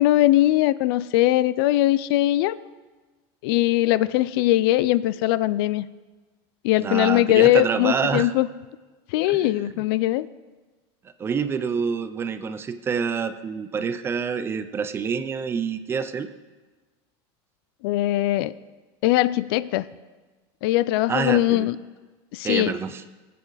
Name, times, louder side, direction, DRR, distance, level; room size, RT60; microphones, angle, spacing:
voice 1, 0.0-2.5 3.4-5.9 6.6-8.5 9.1-10.3 17.8-18.5 19.0-19.9 20.6-21.8 22.3-22.7, left 15 dB, 65° left, 18 dB, 0.4 m, -20 dB
voice 2, 6.8-8.3 9.2-9.8 11.2-16.3 21.1-21.7 22.4-23.0, right 6 dB, 15° right, 11 dB, 0.5 m, -27 dB
19.5 x 8.4 x 4.1 m, 1.3 s
supercardioid pair, 160°, 14 cm